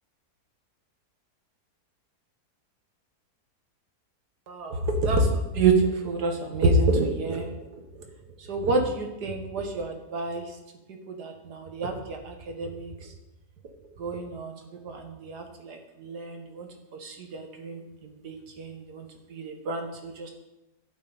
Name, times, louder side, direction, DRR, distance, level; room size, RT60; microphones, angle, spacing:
voice 1, 4.5-7.5 8.5-10.4 11.1-12.9 14.0-14.5 14.8-16.7 17.0-20.3, right 3 dB, 80° right, 4 dB, 2.0 m, -28 dB
11.5 x 9.1 x 4.1 m, 0.96 s
omnidirectional pair, 1.7 m